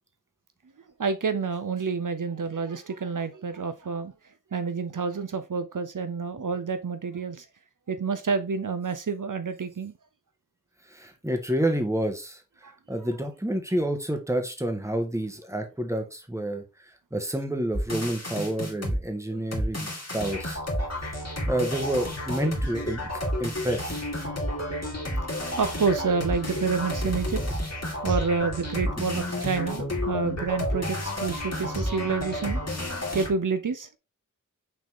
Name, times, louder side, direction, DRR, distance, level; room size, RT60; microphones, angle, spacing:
voice 1, 1.0-4.1 4.5-7.5 7.9-9.9 12.6-12.7 19.3-19.4 21.3-21.4 25.6-27.4 28.0-32.6 33.1-33.9, right 5 dB, 70° right, 0.7 m, -28 dB
voice 2, 10.9-12.4 12.9-16.6 17.1-20.6 21.4-24.1 28.8-28.9, right 1 dB, 10° right, 1.7 m, -29 dB
sound 1, 17.7-19.0 19.5-33.3, equal, 50° left, 2.5 m, -30 dB
6.2 x 4.2 x 3.7 m
wide cardioid pair, 55°, 32 cm